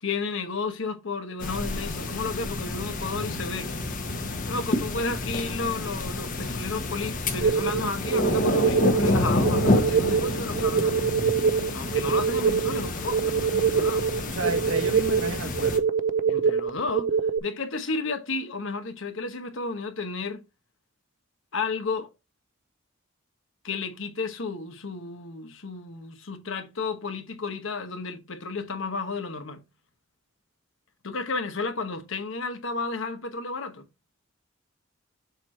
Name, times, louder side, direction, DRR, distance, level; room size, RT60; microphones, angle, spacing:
voice 1, 0.0-3.8 4.5-11.1 11.7-14.0 16.3-17.1 17.4-20.4 21.5-22.1 23.6-29.6 31.0-33.8, left 4 dB, 70° left, 1.0 m, -32 dB
sound 1, 1.4-15.8, left 2 dB, 40° left, 1.1 m, -29 dB
sound 2, 7.4-17.4, right 6 dB, 45° right, 0.4 m, -24 dB
voice 2, 14.2-15.8, right 3 dB, 90° right, 1.5 m, -31 dB
6.9 x 4.4 x 3.2 m
head